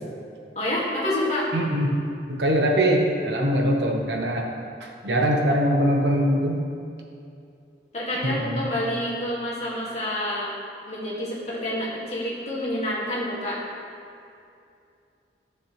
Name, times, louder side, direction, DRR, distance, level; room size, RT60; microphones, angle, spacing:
voice 1, 0.6-1.5 7.9-10.5 10.9-13.6, left 1 dB, 40° left, -6 dB, 2.1 m, -28 dB
voice 2, 1.5-2.0 2.3-4.5 4.8-6.6 8.2-8.6, equal, 85° right, 1 dB, 1.2 m, -22 dB
13.0 x 7.1 x 3.3 m, 2.5 s
head